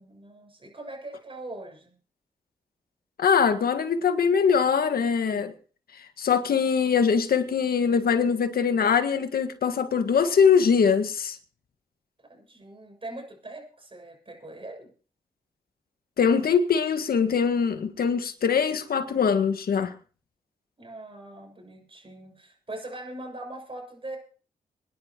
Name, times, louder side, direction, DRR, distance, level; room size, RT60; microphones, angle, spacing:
voice 1, 0.0-2.0 12.2-14.9 20.8-24.2, right 2 dB, 35° right, 2 dB, 6.5 m, -41 dB
voice 2, 3.2-5.5 6.2-11.4 16.2-19.9, left 6 dB, 70° left, 7 dB, 1.8 m, -22 dB
25.0 x 10.5 x 3.0 m, 0.40 s
supercardioid pair, 50°, 16 cm